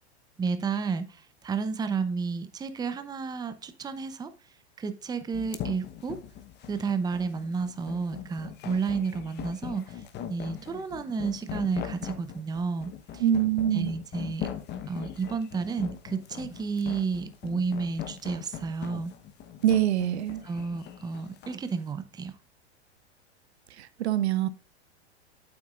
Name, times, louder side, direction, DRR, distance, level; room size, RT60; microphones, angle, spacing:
voice 1, 0.4-4.3 4.8-6.2 6.7-10.0 10.3-13.2 13.7-14.5 14.9-19.1 20.4-22.3, right 5 dB, 10° right, 0.7 m, -31 dB
sound 1, 5.3-21.6, left 9 dB, 30° left, 1.1 m, -40 dB
voice 2, 13.2-13.9 19.6-20.4 23.8-24.5, right 11 dB, 70° right, 0.9 m, -24 dB
8.3 x 8.2 x 2.5 m
hypercardioid pair, 110°, 34 cm